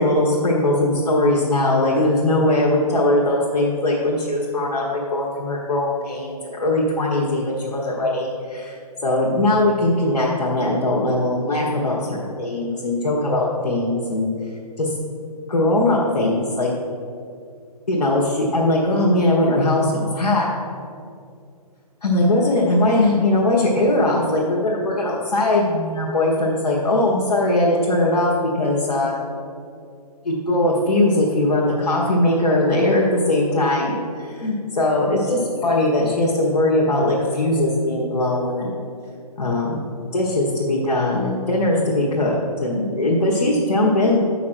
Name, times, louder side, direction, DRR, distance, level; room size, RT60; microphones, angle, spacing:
voice 1, 0.0-8.8 9.0-14.3 14.8-14.9 15.5-16.7 17.9-20.5 22.0-28.3 28.6-29.2 30.2-38.8 39.4-39.8 40.1-44.2, left 1 dB, 75° left, -4 dB, 1.4 m, -20 dB
8.6 x 5.8 x 4.4 m, 2.4 s
hypercardioid pair, 145°, 20 cm